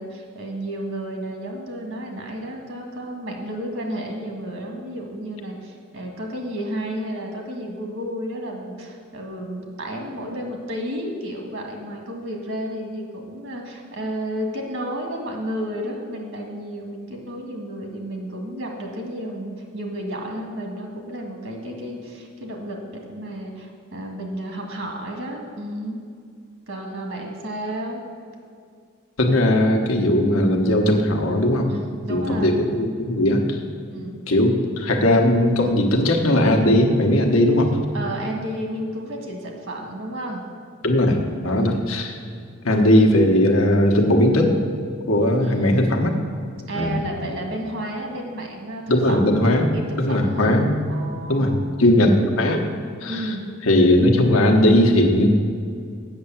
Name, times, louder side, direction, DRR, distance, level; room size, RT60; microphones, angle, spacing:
voice 1, 0.0-26.0 26.7-28.0 31.7-32.6 33.9-34.2 37.9-40.4 41.6-41.8 45.4-45.9 46.7-50.6 50.9-52.3 53.1-53.4, right 1 dB, 65° right, 1 dB, 1.7 m, -32 dB
voice 2, 29.2-31.7 32.1-33.6 34.3-37.7 40.8-42.1 42.6-44.6 45.1-46.1 46.7-47.0 48.9-49.7 50.0-50.7 51.3-51.5 51.8-52.6 53.0-53.3 53.7-55.3, left 1 dB, 80° left, 2 dB, 1.1 m, -18 dB
7.9 x 6.7 x 7.1 m, 2.3 s
head